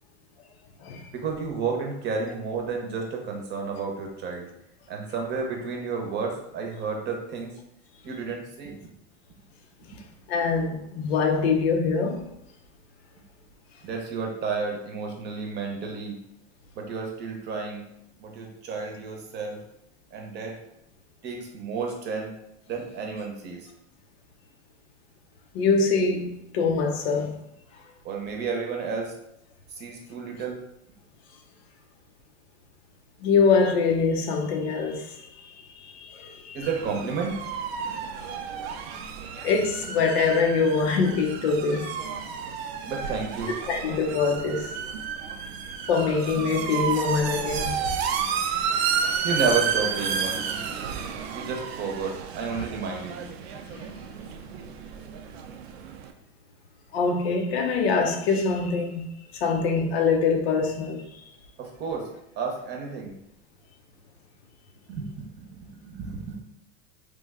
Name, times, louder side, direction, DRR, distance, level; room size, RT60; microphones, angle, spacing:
voice 1, 1.1-4.5 4.9-7.5 8.0-8.8 9.9-10.0 13.8-16.1 16.8-17.8 18.2-19.6 20.1-20.6 21.2-22.3 22.7-23.7 28.0-29.1 29.8-30.6 36.5-37.3 42.9-43.5 49.2-50.4 51.3-53.3 61.6-62.1 62.4-63.2 64.9-65.1 65.4-66.4, right 5 dB, 35° right, 0.7 m, -31 dB
voice 2, 10.3-12.3 25.5-27.4 33.2-36.7 37.8-38.3 39.4-41.9 43.7-44.7 45.9-48.0 52.6-52.7 53.7-53.9 56.9-61.2, left 4 dB, 85° left, 0.7 m, -24 dB
sound 1, 36.6-56.1, right 7 dB, 90° right, 0.5 m, -31 dB
3.2 x 2.1 x 3.5 m
supercardioid pair, 135°, 30 cm